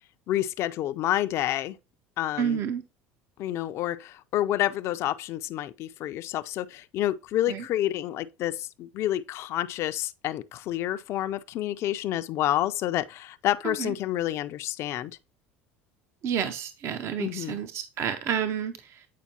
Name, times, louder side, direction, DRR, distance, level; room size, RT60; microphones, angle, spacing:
voice 1, 0.3-1.8 2.2-2.6 3.4-15.2 17.2-17.6, left 13 dB, 55° left, 0.4 m, -29 dB
voice 2, 2.4-2.8 7.5-7.6 13.6-13.9 16.2-19.1, right 8 dB, 50° right, 0.5 m, -30 dB
8.3 x 4.4 x 2.8 m
supercardioid pair, 90°, 6 cm